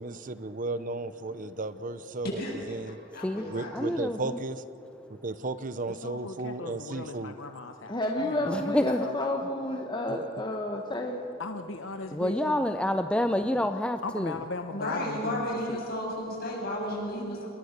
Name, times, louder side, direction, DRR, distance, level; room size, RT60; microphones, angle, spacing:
voice 1, 0.0-3.0 3.5-4.6 5.1-7.4 10.1-10.3, right 2 dB, 40° right, 13 dB, 0.7 m, -35 dB
voice 2, 2.4-2.8 3.1-4.0 14.7-17.5, left 1 dB, 50° left, -2 dB, 7.8 m, -33 dB
voice 3, 3.7-4.4 8.4-9.1 12.1-14.4, left 1 dB, 5° left, 7 dB, 0.6 m, -28 dB
voice 4, 6.0-8.7 9.0-9.4 11.4-12.6 14.0-15.8, left 3 dB, 70° left, 7 dB, 0.9 m, -38 dB
voice 5, 7.9-11.2, left 1 dB, 25° left, 2 dB, 1.4 m, -30 dB
28.0 x 21.5 x 6.7 m, 2.7 s
head